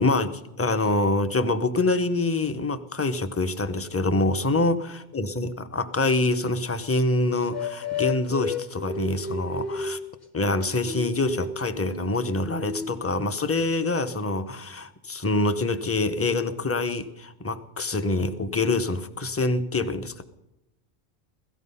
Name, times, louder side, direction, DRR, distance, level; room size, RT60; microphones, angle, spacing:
voice 1, 0.0-10.0 10.3-20.2, left 2 dB, 15° left, 11 dB, 0.6 m, -25 dB
sound 1, 7.5-10.0 10.5-13.2, left 4 dB, 45° left, 1.9 m, -33 dB
17.0 x 14.5 x 5.5 m, 0.89 s
omnidirectional pair, 1.1 m